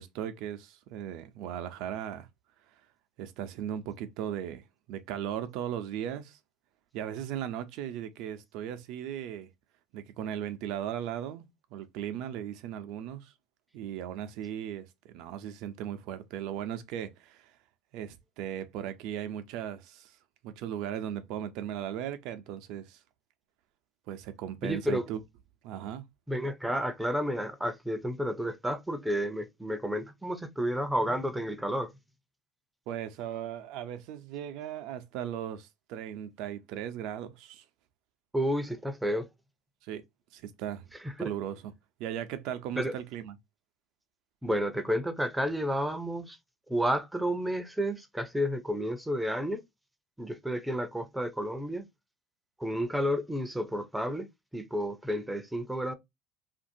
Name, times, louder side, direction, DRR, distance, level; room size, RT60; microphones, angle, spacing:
voice 1, 0.0-2.3 3.2-4.6 4.9-6.4 6.9-9.5 9.9-13.3 13.7-17.5 17.9-20.1 20.4-23.0 24.1-25.2 25.6-26.0 32.9-37.6 39.8-40.0 40.3-40.9 41.2-41.7 42.0-43.4, right 10 dB, 70° right, 0.5 m, -37 dB
voice 2, 24.6-25.0 26.3-31.9 38.3-39.3 41.2-41.3 42.8-42.9 44.4-46.4 46.7-49.6 50.2-51.8 52.6-54.3 54.5-55.9, equal, 5° right, 0.5 m, -31 dB
2.9 x 2.5 x 2.6 m
supercardioid pair, 105°, 0 cm